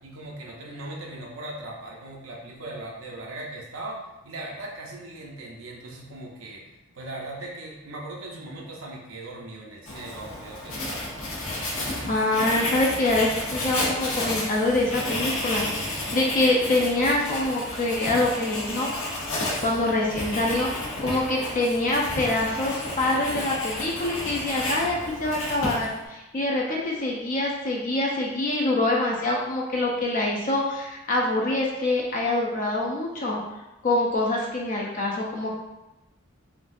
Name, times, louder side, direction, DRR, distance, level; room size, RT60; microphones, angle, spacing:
voice 1, 0.0-6.6 6.9-11.1, right 2 dB, 70° right, -2 dB, 0.6 m, -39 dB
Writing, 9.9-26.1, left 1 dB, 80° left, 0.9 m, -31 dB
voice 2, 12.1-19.2 19.6-20.7 21.0-33.4 33.8-35.5, left 2 dB, 40° left, -2 dB, 0.4 m, -25 dB
3.8 x 2.3 x 2.5 m, 0.99 s
head